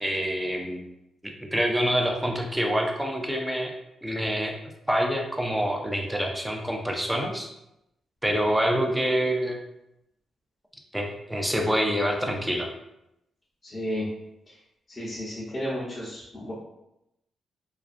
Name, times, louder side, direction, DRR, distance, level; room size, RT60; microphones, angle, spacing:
voice 1, 0.0-0.8 1.5-3.7 4.0-4.5 4.9-7.5 8.2-9.6 10.9-12.7, equal, 5° right, 1 dB, 0.4 m, -26 dB
voice 2, 13.6-14.1 14.5-14.6 14.9-16.5, equal, 30° left, -8 dB, 0.7 m, -33 dB
2.4 x 2.2 x 2.4 m, 0.85 s
cardioid pair, 95°, 0 cm